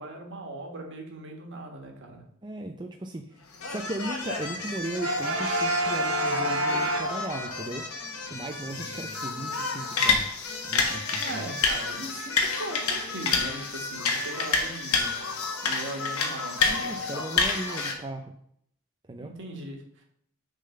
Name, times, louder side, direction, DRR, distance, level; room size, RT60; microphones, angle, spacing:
voice 1, 0.0-2.2 8.6-9.1 11.2-17.1 19.2-20.0, right 2 dB, 55° right, 2 dB, 1.6 m, -40 dB
voice 2, 2.4-7.9 8.3-11.4 16.7-18.3 19.1-19.3, right 2 dB, 20° right, 4 dB, 0.5 m, -37 dB
sound 1, 3.5-17.9, left 4 dB, 85° left, 1.3 m, -29 dB
Brass instrument, 5.0-7.7, right 4 dB, 75° right, 0.8 m, -31 dB
6.7 x 3.8 x 6.4 m, 0.69 s
head